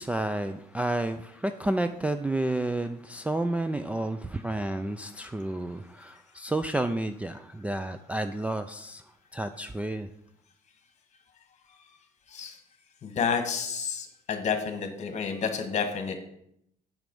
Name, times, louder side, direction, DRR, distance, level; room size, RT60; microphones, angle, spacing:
voice 1, 0.0-9.0 9.3-10.1, right 1 dB, 10° right, 9 dB, 0.4 m, -30 dB
voice 2, 13.0-16.1, left 6 dB, 45° left, 6 dB, 1.5 m, -30 dB
7.4 x 6.1 x 5.3 m, 0.75 s
cardioid pair, 110°, 17 cm